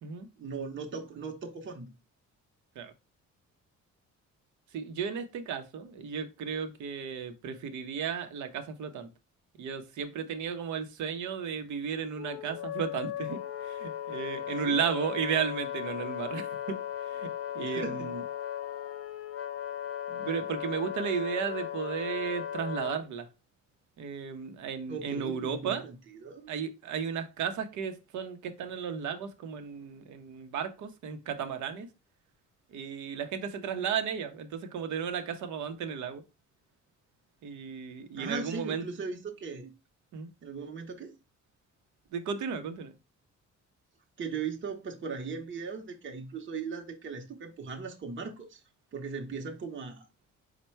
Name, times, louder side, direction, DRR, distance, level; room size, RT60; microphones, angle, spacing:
voice 1, 0.4-1.9 14.6-14.9 17.6-18.1 24.9-26.5 38.2-39.7 40.4-41.1 44.2-48.6 48.9-50.0, right 5 dB, 40° right, 0.8 m, -38 dB
voice 2, 4.7-9.1 9.6-16.8 17.1-17.3 17.5-18.2 20.1-23.3 24.0-25.8 26.5-31.9 32.7-36.2 37.4-38.9 40.1-40.3 42.1-42.9, right 7 dB, 75° right, 0.7 m, -34 dB
Wind instrument woodwind instrument, 12.2-23.0, left 10 dB, 50° left, 0.5 m, -37 dB
4.4 x 2.2 x 4.3 m
cardioid pair, 90°, 30 cm